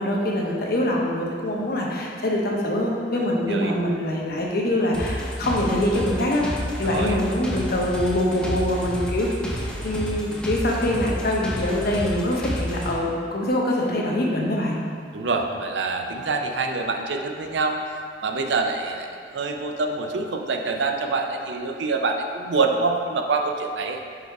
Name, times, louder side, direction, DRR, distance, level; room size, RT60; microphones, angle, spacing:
voice 1, 0.0-6.5 6.8-14.8, left 1 dB, 60° left, -2 dB, 0.9 m, -24 dB
sound 1, 4.9-12.9, equal, 5° left, 0.7 m, -30 dB
voice 2, 6.8-7.2 15.1-17.8 18.2-24.0, right 3 dB, 80° right, 3 dB, 0.5 m, -26 dB
4.8 x 4.8 x 4.6 m, 2.2 s
head